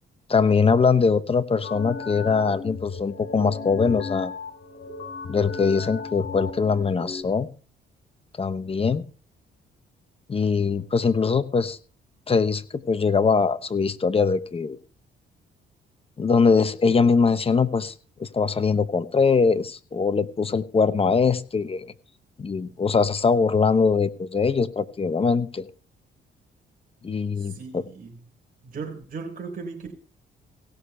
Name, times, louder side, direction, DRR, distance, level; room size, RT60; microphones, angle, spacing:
voice 1, 0.3-4.3 5.3-7.5 8.4-9.0 10.3-11.8 12.3-14.8 16.2-17.9 18.2-21.9 22.4-25.7 27.0-27.8, left 5 dB, 30° left, 0.8 m, -22 dB
sound 1, 1.6-7.2, left 4 dB, 60° left, 4.2 m, -35 dB
voice 2, 27.4-28.2 28.6-29.9, right 4 dB, 45° right, 4.0 m, -37 dB
17.0 x 6.5 x 5.5 m
cardioid pair, 90°, 20 cm